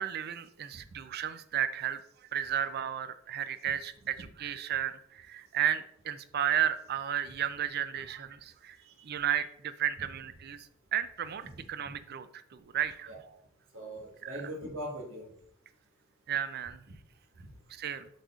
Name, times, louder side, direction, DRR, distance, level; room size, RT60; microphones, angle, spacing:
voice 1, 0.0-2.0 2.3-8.8 9.0-10.7 10.9-13.1 14.2-14.4 16.3-16.8 17.7-18.1, right 9 dB, 50° right, 13 dB, 0.4 m, -33 dB
voice 2, 11.5-11.9 13.1-13.2 13.7-15.3 17.4-17.5, equal, 85° right, 1 dB, 1.5 m, -41 dB
6.4 x 6.4 x 2.4 m, 0.71 s
head